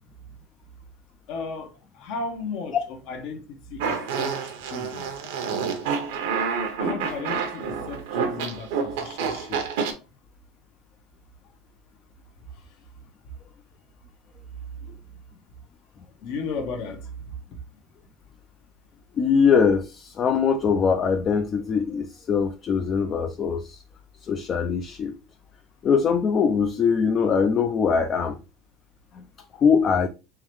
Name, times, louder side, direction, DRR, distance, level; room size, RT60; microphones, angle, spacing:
voice 1, 1.3-5.1 6.8-9.6 16.2-17.4, left 4 dB, 65° left, 1.1 m, -35 dB
Fart, 3.8-9.9, right 6 dB, 85° right, 0.9 m, -28 dB
voice 2, 19.2-23.8 24.2-25.2 25.8-28.4 29.1-29.2 29.5-30.1, left 6 dB, 35° left, 0.4 m, -22 dB
3.7 x 3.3 x 3.1 m
supercardioid pair, 125°, 0 cm